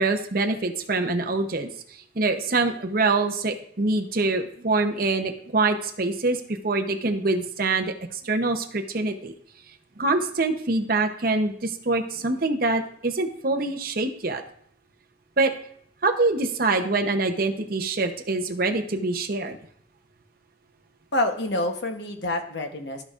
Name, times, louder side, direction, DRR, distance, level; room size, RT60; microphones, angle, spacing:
voice 1, 0.0-9.3 10.0-14.4 15.4-15.5 16.0-19.6, right 3 dB, 50° right, 4 dB, 0.8 m, -25 dB
voice 2, 21.1-23.0, left 1 dB, 60° left, 4 dB, 1.0 m, -27 dB
14.0 x 5.1 x 2.5 m, 0.64 s
head